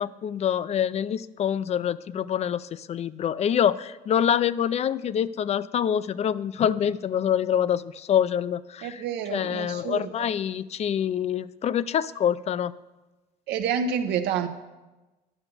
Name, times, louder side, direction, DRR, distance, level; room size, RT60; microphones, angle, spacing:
voice 1, 0.0-9.0 9.3-12.7, left 9 dB, 40° left, 17 dB, 0.4 m, -26 dB
voice 2, 8.8-10.3 13.5-14.5, right 7 dB, 85° right, 6 dB, 0.9 m, -28 dB
11.0 x 5.8 x 6.8 m, 1.1 s
cardioid pair, 110°, 17 cm